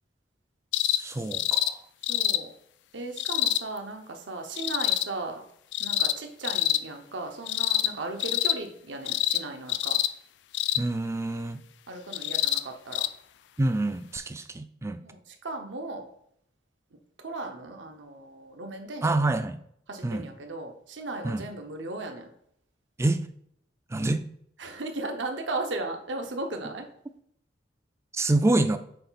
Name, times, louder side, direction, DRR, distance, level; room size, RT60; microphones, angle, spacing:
sound 1, 0.7-1.0 1.3-1.7 2.0-2.4 3.2-3.6 4.6-5.1 5.7-6.2 6.4-6.8 7.5-7.9 8.2-8.6 9.1-9.4 9.7-10.1 10.5-10.8 12.1-12.6 12.9-13.1 14.2-14.3, left 13 dB, 65° left, 0.3 m, -26 dB
voice 1, 1.0-1.8 10.8-11.6 13.6-15.0 19.0-19.6 20.0-20.3 21.2-21.5 23.0-23.2 23.9-24.2 28.1-28.8, right 2 dB, 15° right, 10 dB, 0.3 m, -26 dB
voice 2, 2.1-2.5 2.9-5.4 5.8-10.0 11.9-13.1 15.0-16.1 17.2-19.1 19.9-22.3 24.6-26.9, right 2 dB, 80° right, 4 dB, 0.9 m, -36 dB
6.8 x 3.8 x 4.1 m, 0.71 s
head